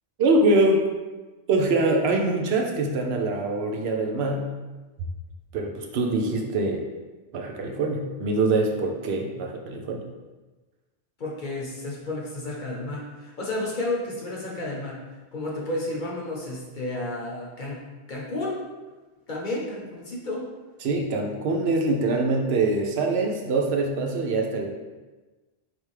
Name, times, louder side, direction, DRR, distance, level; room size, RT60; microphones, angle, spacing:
voice 1, 0.2-0.9 1.5-4.5 5.5-6.8 7.3-10.0 20.8-24.7, right 2 dB, 75° right, 3 dB, 0.8 m, -24 dB
voice 2, 11.2-15.0 15.3-18.6 19.3-20.5, left 2 dB, 50° left, -3 dB, 0.9 m, -32 dB
4.3 x 3.3 x 3.2 m, 1.2 s
omnidirectional pair, 1.1 m